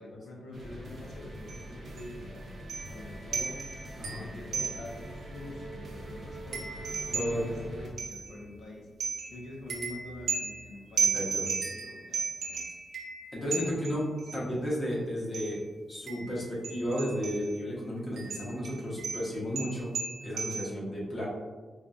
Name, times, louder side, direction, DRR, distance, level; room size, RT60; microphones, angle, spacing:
voice 1, 0.0-2.4 2.8-3.7 4.1-8.9 9.3-11.6 11.8-12.8 14.3-15.0, left 1 dB, 70° left, -1 dB, 0.7 m, -45 dB
sound 1, 0.5-7.9, right 1 dB, 45° right, 0.6 m, -43 dB
sound 2, 1.5-1.7 2.0-2.1 2.7-3.0 3.3-5.1 5.5-5.6 5.8-8.6 9.0-14.4 15.3-15.6 16.1-17.6 18.2-20.7, right 5 dB, 90° right, 0.6 m, -35 dB
voice 2, 7.1-7.4 11.1-11.4 13.3-15.6 15.9-19.9 20.2-21.3, equal, 25° left, -5 dB, 1.0 m, -33 dB
4.7 x 2.6 x 2.3 m, 1.4 s
wide cardioid pair, 150°, 0 cm